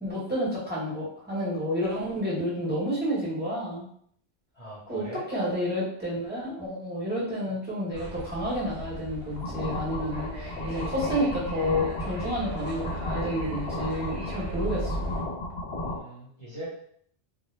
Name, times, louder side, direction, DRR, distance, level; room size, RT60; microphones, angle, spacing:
voice 1, 0.0-3.8 4.9-5.0 5.3-15.1, equal, 10° right, -9 dB, 0.9 m, -30 dB
voice 2, 4.5-5.2 7.4-7.6 15.8-16.7, right 1 dB, 35° left, -10 dB, 0.8 m, -42 dB
sound 1, 7.9-15.2, right 1 dB, 65° right, 0.9 m, -37 dB
sound 2, 9.3-16.0, left 2 dB, 75° left, 0.8 m, -35 dB
2.2 x 2.0 x 3.1 m, 0.64 s
omnidirectional pair, 1.1 m